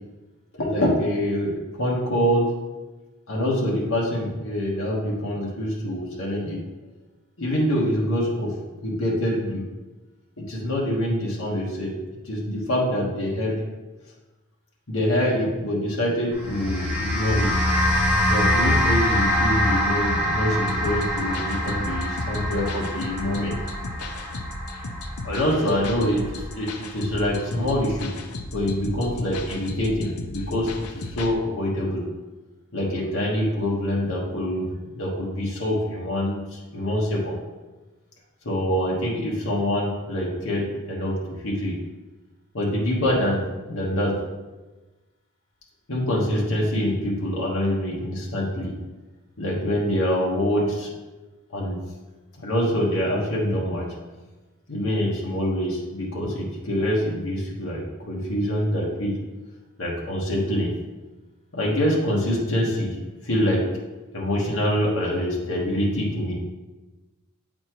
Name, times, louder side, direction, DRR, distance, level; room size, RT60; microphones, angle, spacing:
voice 1, 0.5-2.5 3.3-6.7 7.4-9.7 10.4-12.0 12.2-13.7 14.9-17.6 18.3-23.5 25.2-28.2 28.5-32.1 32.7-37.4 38.4-41.8 42.5-44.2 45.9-48.8 49.4-50.9 51.5-51.8 52.4-53.9 54.7-59.2 59.8-60.7 61.5-63.0 63.2-63.7 64.1-66.3, equal, 65° left, -4 dB, 1.3 m, -25 dB
sound 1, 16.3-26.9, left 1 dB, 10° right, 1.8 m, -25 dB
sound 2, 20.7-31.3, left 2 dB, 85° left, 0.6 m, -35 dB
7.8 x 4.2 x 3.0 m, 1.2 s
head